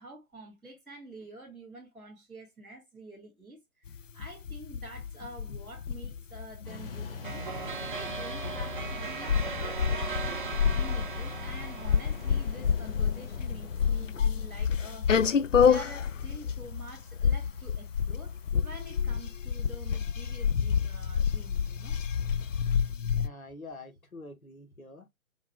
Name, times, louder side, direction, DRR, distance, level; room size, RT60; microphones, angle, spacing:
voice 1, 0.0-7.5 7.8-10.4 10.7-22.0, right 2 dB, ahead, 0.7 m, -48 dB
sound 1, 3.9-23.3, left 7 dB, 65° left, 0.5 m, -29 dB
sound 2, 6.6-22.9, left 5 dB, 45° left, 1.3 m, -45 dB
sound 3, 7.2-12.7, right 5 dB, 40° right, 0.7 m, -38 dB
voice 2, 23.1-25.1, left 2 dB, 90° left, 1.3 m, -46 dB
4.7 x 2.2 x 3.6 m
figure-of-eight pair, 140°, 41 cm